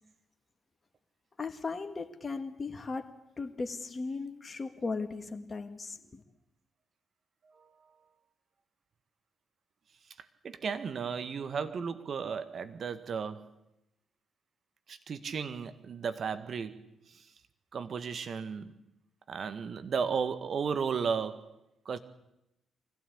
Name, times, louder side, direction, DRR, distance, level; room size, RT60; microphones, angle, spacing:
voice 1, 1.4-3.1 3.4-6.2, left 4 dB, 35° left, 7 dB, 2.1 m, -37 dB
voice 2, 10.4-13.5 14.9-17.3 17.7-18.8 19.3-21.6 21.9-22.0, right 6 dB, 55° right, 11 dB, 1.8 m, -34 dB
24.0 x 16.5 x 8.6 m, 0.86 s
hypercardioid pair, 40°, 0 cm